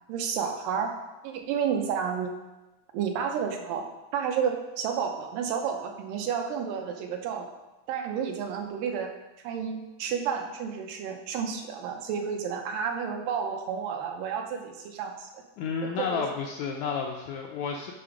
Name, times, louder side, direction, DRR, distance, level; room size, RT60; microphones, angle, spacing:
voice 1, 0.1-1.0 1.2-2.3 2.9-3.9 4.1-7.5 7.9-9.1 9.4-15.3 15.8-16.2, right 7 dB, 85° right, 4 dB, 2.4 m, -31 dB
voice 2, 15.6-17.9, left 6 dB, 80° left, 1 dB, 1.7 m, -31 dB
6.8 x 5.9 x 4.9 m, 1.0 s
omnidirectional pair, 3.8 m